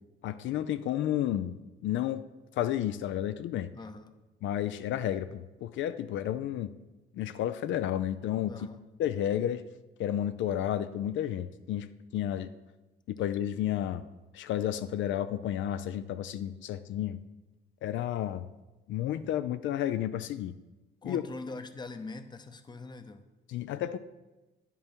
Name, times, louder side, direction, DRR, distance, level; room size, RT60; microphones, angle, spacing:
voice 1, 0.2-1.6 1.8-2.2 2.6-3.7 4.4-6.7 7.1-8.5 9.0-9.6 10.0-11.9 12.1-12.5 13.1-14.1 14.3-17.2 17.8-18.5 18.9-20.5 21.0-21.2 23.5-24.0, left 11 dB, 75° left, 11 dB, 0.4 m, -31 dB
voice 2, 3.7-4.1 8.5-8.8 21.0-23.2, left 3 dB, 20° left, 8 dB, 0.7 m, -42 dB
9.7 x 5.4 x 4.5 m, 1.1 s
cardioid pair, 90°, 20 cm